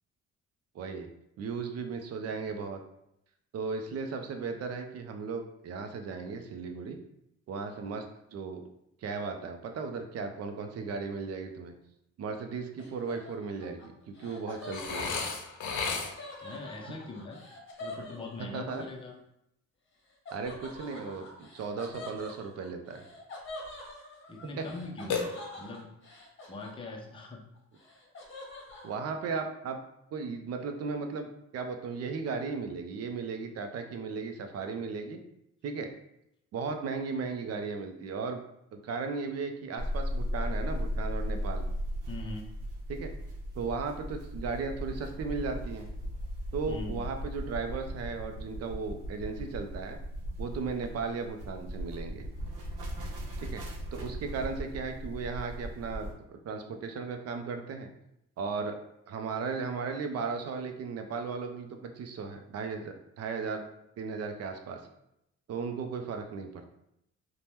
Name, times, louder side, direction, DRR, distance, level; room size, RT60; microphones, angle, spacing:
voice 1, 0.7-1.1 1.4-2.8 3.5-7.0 7.5-8.6 9.0-11.7 12.2-15.2 18.5-18.9 20.3-23.0 24.6-24.7 28.8-29.8 30.1-35.2 35.6-35.9 36.5-38.4 38.7-41.7 42.9-43.1 43.5-45.9 46.5-50.0 50.4-52.2 53.4-53.6 53.9-57.9 58.4-58.8 59.1-63.7 64.0-64.8 65.5-66.7, right 4 dB, 55° right, 6 dB, 0.5 m, -36 dB
Laughter, 12.8-18.8 20.3-27.2 27.5-29.0, left 2 dB, 40° left, 0.8 m, -46 dB
Burping eructation, 14.7-16.4 25.1-25.9, left 5 dB, 75° left, 0.6 m, -34 dB
voice 2, 16.4-17.4 17.8-19.1 24.3-25.2 25.6-25.9 26.5-27.4 42.1-42.5 46.7-47.0, left 2 dB, 15° left, 1 dB, 0.5 m, -41 dB
sound 1, 39.8-56.1, equal, 85° right, 0.7 m, -37 dB
2.8 x 2.2 x 3.3 m, 0.81 s
cardioid pair, 90°, 30 cm